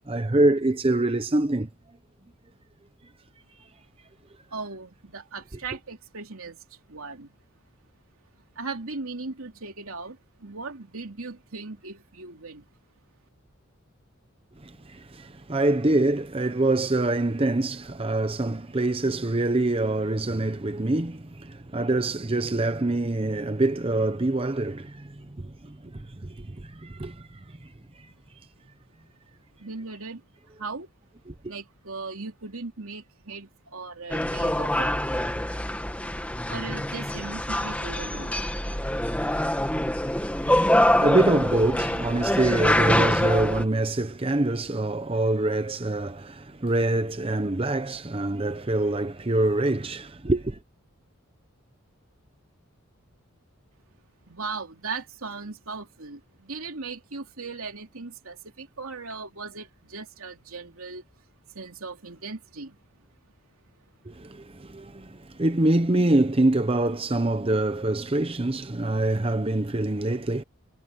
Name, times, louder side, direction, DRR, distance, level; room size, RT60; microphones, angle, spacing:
voice 1, 0.1-1.7 14.9-25.1 26.4-26.5 26.8-27.2 31.3-31.4 40.4-50.6 64.1-70.4, right 2 dB, 25° right, 0.7 m, -25 dB
voice 2, 4.5-6.6 6.9-7.3 8.6-10.2 10.4-12.6 29.6-30.2 30.6-30.9 31.5-34.9 36.5-38.4 54.3-56.2 56.5-61.0 61.6-62.7, right 4 dB, 80° right, 3.0 m, -38 dB
sound 1, 34.1-43.6, left 1 dB, 5° left, 1.8 m, -25 dB
head